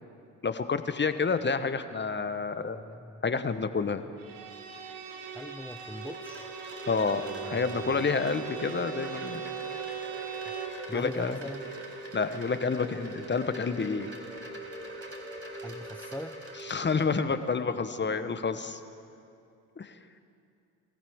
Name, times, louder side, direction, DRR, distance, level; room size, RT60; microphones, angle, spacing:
voice 1, 0.4-2.8 3.2-4.0 6.8-9.6 10.9-11.4 12.1-14.1 16.6-18.8 19.8-20.0, left 5 dB, 25° left, 10 dB, 1.0 m, -29 dB
voice 2, 2.6-3.2 5.3-6.5 7.2-8.1 10.5-10.6 10.9-11.7 15.6-16.4, left 1 dB, 5° left, 6 dB, 0.5 m, -41 dB
Bowed string instrument, 4.2-10.9, right 8 dB, 80° right, 1.5 m, -40 dB
Wind chime, 5.3-17.5, right 1 dB, 35° right, 4.7 m, -42 dB
24.0 x 15.5 x 3.6 m, 2.5 s
hypercardioid pair, 60°, 43 cm